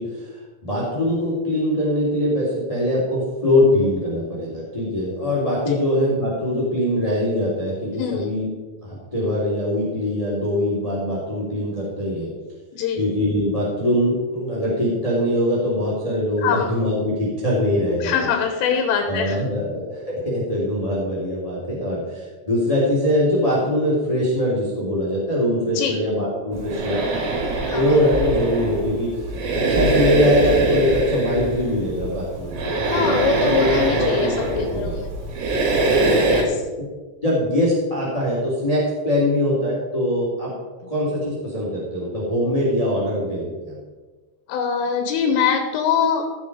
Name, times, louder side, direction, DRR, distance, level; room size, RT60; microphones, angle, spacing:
voice 1, 0.0-8.5 8.8-12.3 13.0-18.3 19.0-27.0 27.7-35.0 36.0-36.3 36.8-36.9 37.2-40.5 40.9-43.8, left 1 dB, 10° left, -6 dB, 2.0 m, -22 dB
voice 2, 8.0-8.3 12.7-13.0 16.4-16.7 18.0-19.4 25.8-26.0 27.7-27.9 32.9-35.1 36.2-36.6 44.5-46.2, left 7 dB, 80° left, 5 dB, 3.7 m, -23 dB
sound 1, 26.5-36.4, right 2 dB, 80° right, 5.5 m, -23 dB
17.0 x 7.1 x 5.0 m, 1.3 s
omnidirectional pair, 6.0 m